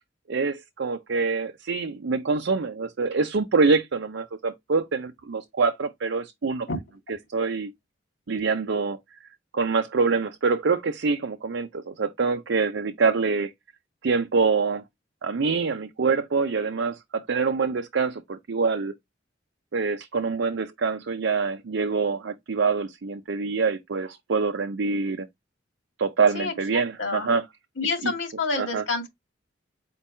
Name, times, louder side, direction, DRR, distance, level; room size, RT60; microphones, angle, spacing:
voice 1, 0.3-6.7 7.3-7.7 8.3-9.0 9.5-13.5 14.0-14.8 15.2-18.9 19.7-25.3 26.0-27.4 28.0-28.1 28.6-28.8, right 4 dB, 75° right, 0.5 m, -25 dB
voice 2, 26.3-27.3 27.8-29.1, left 3 dB, 85° left, 1.8 m, -29 dB
4.6 x 2.2 x 4.2 m
head